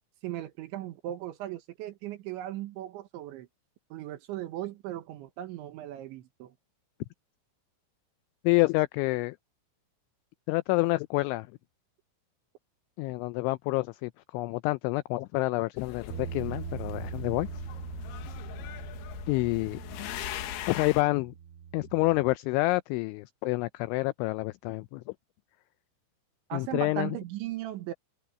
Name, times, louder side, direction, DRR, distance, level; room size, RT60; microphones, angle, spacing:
voice 1, 0.2-3.5 3.9-6.5 26.5-27.9, right 13 dB, 70° right, 3.4 m, -37 dB
voice 2, 8.4-9.4 10.5-11.5 13.0-17.5 19.3-19.8 20.7-21.3 21.7-25.0 26.5-27.1, left 22 dB, 90° left, 2.7 m, -28 dB
sound 1, 15.8-21.0, left 12 dB, 70° left, 2.5 m, -40 dB
Bass guitar, 16.1-22.4, right 8 dB, 90° right, 4.8 m, -41 dB
omnidirectional pair, 5.9 m